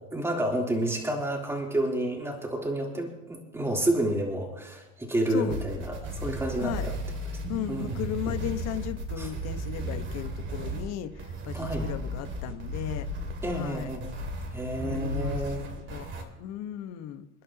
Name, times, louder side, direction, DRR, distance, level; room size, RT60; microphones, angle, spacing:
voice 1, 0.1-6.9 7.7-8.4 9.2-9.3 11.5-11.9 13.4-14.1 14.5-15.6, right 1 dB, 5° right, -1 dB, 3.4 m, -30 dB
sound 1, 5.5-16.2, right 1 dB, 30° right, 2.4 m, -35 dB
voice 2, 7.5-13.1 13.5-14.0 14.8-15.4 15.9-17.3, left 11 dB, 45° left, 9 dB, 1.3 m, -36 dB
29.0 x 11.0 x 2.9 m, 0.98 s
supercardioid pair, 135°, 36 cm